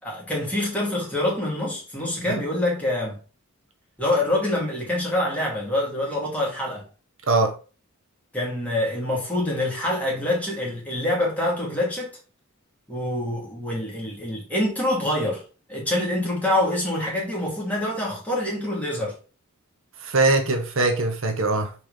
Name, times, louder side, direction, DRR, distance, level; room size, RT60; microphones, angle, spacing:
voice 1, 0.0-3.2 4.0-6.8 8.3-12.2 12.9-15.4 15.7-19.1, left 1 dB, 5° left, 2.6 m, -25 dB
voice 2, 7.3-7.6 20.0-21.7, right 3 dB, 65° right, 0.9 m, -22 dB
4.6 x 4.0 x 5.1 m
head